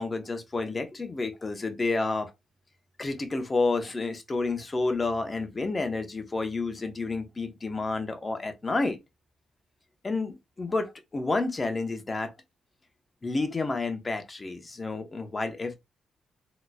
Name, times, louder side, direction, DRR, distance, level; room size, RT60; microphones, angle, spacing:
voice 1, 0.0-2.3 3.0-9.0 10.0-12.3 13.2-15.8, left 3 dB, 30° left, 0.9 m, -30 dB
3.8 x 3.0 x 2.2 m
cardioid pair, 65°, 0 cm